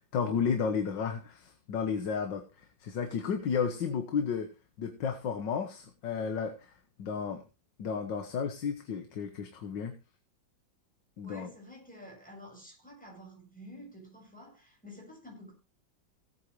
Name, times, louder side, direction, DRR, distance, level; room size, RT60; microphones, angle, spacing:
voice 1, 0.1-2.4 2.8-4.5 4.8-6.5 7.0-7.4 7.8-9.9 11.2-11.5, left 6 dB, 70° left, 1.9 m, -32 dB
voice 2, 11.2-15.5, equal, 5° left, 7.0 m, -50 dB
17.0 x 9.2 x 3.2 m
omnidirectional pair, 2.1 m